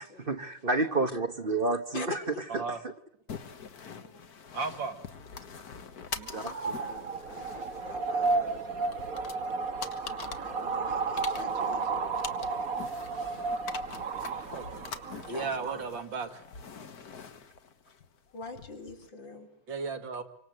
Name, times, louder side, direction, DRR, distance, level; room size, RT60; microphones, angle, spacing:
voice 1, 0.0-2.2 2.5-2.9 6.3-6.7, right 3 dB, 35° right, 8 dB, 1.2 m, -30 dB
voice 2, 1.9-2.7 3.9-4.2 6.2-8.9 10.4-12.3 15.3-15.9 18.3-19.5, left 3 dB, 80° left, 3 dB, 5.0 m, -44 dB
sound 1, 3.3-19.1, left 6 dB, 55° left, 1.9 m, -45 dB
voice 3, 4.5-5.0 5.4-5.5 6.1-6.3 14.5-14.8 15.3-16.4 19.7-20.2, right 4 dB, 85° right, 7 dB, 2.8 m, -35 dB
sound 2, 6.1-15.9, right 4 dB, 50° right, 1.9 m, -33 dB
27.0 x 25.0 x 7.9 m, 0.66 s
omnidirectional pair, 2.0 m